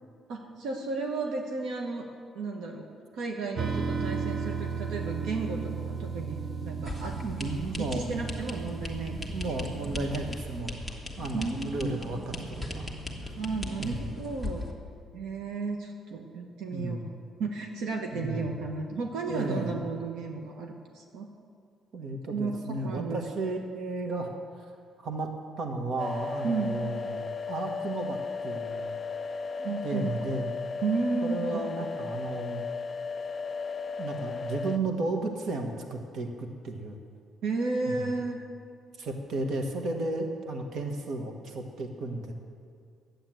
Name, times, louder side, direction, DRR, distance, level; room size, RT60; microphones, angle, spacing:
voice 1, 0.3-2.1 2.3-2.9 3.1-9.2 9.5-9.6 11.3-12.0 13.4-14.6 15.1-17.0 17.4-21.3 22.3-22.6 22.8-23.2 26.4-26.8 29.6-30.1 30.8-31.9 37.4-38.4, right 4 dB, 85° right, 2 dB, 1.3 m, -33 dB
sound 1, 3.6-10.6, right 5 dB, 35° right, 0.7 m, -35 dB
sound 2, 6.9-14.7, left 1 dB, 10° right, 1.5 m, -38 dB
voice 2, 7.2-8.2 9.3-10.8 11.2-12.9 13.2-13.3 13.8-14.1 16.7-17.0 18.1-18.6 19.3-19.8 21.9-24.6 25.0-25.3 25.6-28.2 28.4-28.9 29.6-30.5 31.2-32.6 34.0-37.0 37.9-38.1 39.0-42.3, right 2 dB, 60° right, 3 dB, 1.5 m, -34 dB
sound 3, 26.0-34.8, left 4 dB, 30° left, 0.4 m, -35 dB
11.5 x 8.7 x 7.7 m, 2.2 s
cardioid pair, 130°, 0 cm